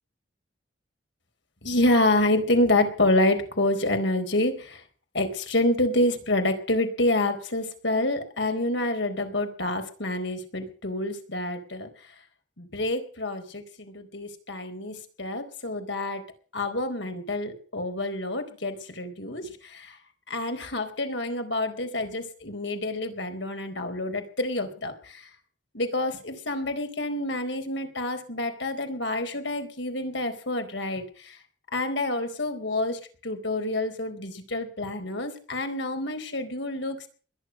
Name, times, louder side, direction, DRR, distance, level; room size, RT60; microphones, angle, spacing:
voice 1, 1.6-4.8 5.1-11.9 12.6-16.2 16.5-20.0 20.3-25.3 25.7-31.4 31.7-37.0, left 1 dB, 75° left, 7 dB, 4.2 m, -27 dB
21.5 x 10.5 x 6.4 m, 0.42 s
head